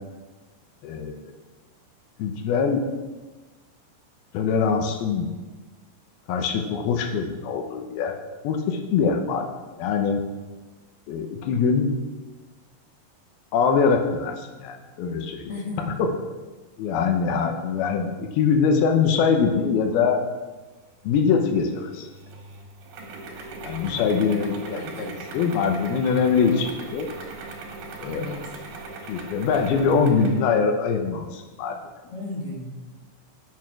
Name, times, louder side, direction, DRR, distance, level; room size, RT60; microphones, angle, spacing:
voice 1, 0.8-1.1 2.2-2.8 4.3-5.3 6.3-8.1 8.4-9.5 9.8-10.2 11.1-11.9 13.5-15.5 15.9-16.1 16.8-20.2 21.0-22.1 23.6-27.1 28.0-28.2 29.1-31.8, left 5 dB, 90° left, 4 dB, 2.8 m, -23 dB
voice 2, 15.5-16.0 23.8-24.3 24.8-25.2 28.1-28.5 32.0-32.7, left 2 dB, 50° left, -3 dB, 2.3 m, -35 dB
sound 1, 21.7-30.5, right 3 dB, 80° right, 3.4 m, -39 dB
9.3 x 8.3 x 6.0 m, 1.2 s
omnidirectional pair, 4.3 m